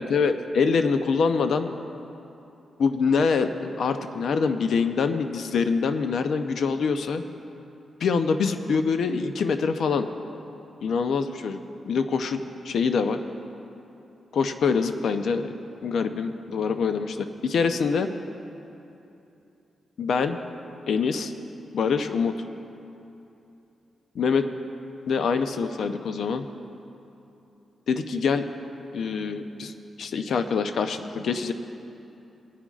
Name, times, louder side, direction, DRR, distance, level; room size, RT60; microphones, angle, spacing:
voice 1, 0.0-1.7 2.8-7.2 8.0-10.1 10.8-11.6 11.9-13.2 14.3-15.5 15.8-18.1 20.0-20.4 20.9-21.3 21.7-22.4 24.1-24.5 25.1-26.5 27.9-28.5 28.9-29.7 30.0-31.5, left 5 dB, 75° left, 8 dB, 0.6 m, -25 dB
23.0 x 9.9 x 2.4 m, 2.9 s
cardioid pair, 90°, 0 cm